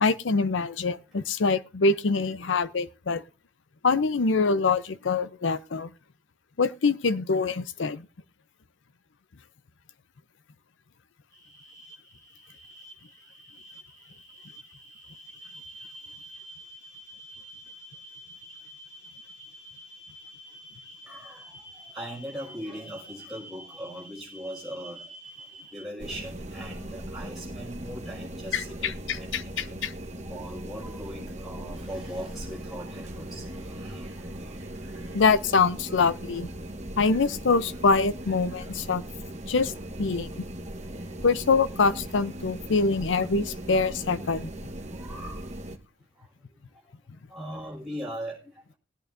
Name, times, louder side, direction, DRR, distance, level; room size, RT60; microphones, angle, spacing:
voice 1, 0.0-3.2 3.8-5.9 6.6-8.1 28.5-29.9 35.1-36.5 37.0-39.0 39.5-39.7 40.0-40.3 41.2-44.5, left 4 dB, 80° left, 0.6 m, -24 dB
sound 1, 11.3-25.8, equal, 15° left, 4.1 m, -48 dB
voice 2, 21.1-21.4 21.9-25.0 25.7-29.8 30.3-34.2 34.7-35.2 37.1-37.2 38.2-38.3 38.6-38.7 39.6-39.9 40.2-40.3 41.2-41.3 44.9-45.4 47.3-48.4, equal, ahead, 5.5 m, -40 dB
sound 2, 26.0-45.8, right 1 dB, 35° right, 1.1 m, -39 dB
20.0 x 8.8 x 2.6 m
head